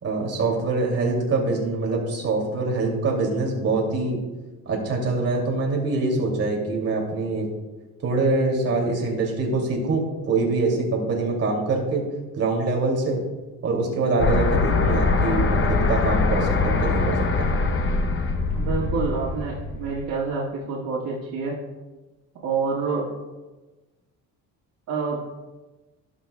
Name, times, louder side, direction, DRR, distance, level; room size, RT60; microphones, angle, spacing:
voice 1, 0.0-4.2 4.7-7.5 8.0-12.0 12.3-13.2 13.6-17.5, right 3 dB, 40° right, -2 dB, 2.6 m, -24 dB
sound 1, 14.2-20.0, left 3 dB, 35° left, 0.9 m, -23 dB
voice 2, 18.5-21.6 22.4-23.1 24.9-25.2, right 4 dB, 80° right, -7 dB, 1.8 m, -27 dB
17.5 x 6.4 x 2.3 m, 1.2 s
cardioid pair, 150°, 37 cm